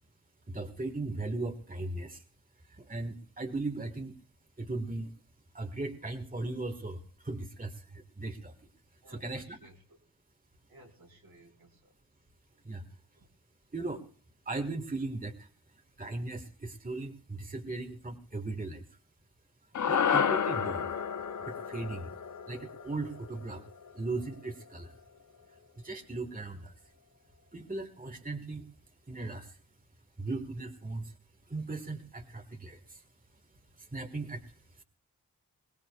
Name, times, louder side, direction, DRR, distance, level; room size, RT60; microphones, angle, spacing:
voice 1, 0.5-2.2 2.6-4.2 4.6-5.1 5.5-8.7 9.1-9.6 12.6-12.8 13.7-14.0 14.4-18.9 19.9-20.9 21.4-22.1 22.5-23.6 23.9-25.0 25.8-26.7 27.5-28.7 29.1-29.6 30.2-31.2 31.5-33.0 33.8-34.8, right 2 dB, 25° right, 5 dB, 1.6 m, -38 dB
voice 2, 9.0-10.0 10.7-11.9 12.5-12.6 13.2-13.3, right 1 dB, 75° right, 1 dB, 3.4 m, -58 dB
sound 1, 19.7-24.2, left 7 dB, 55° left, 0.7 m, -31 dB
22.0 x 18.0 x 2.4 m, 0.40 s
cardioid pair, 45°, 36 cm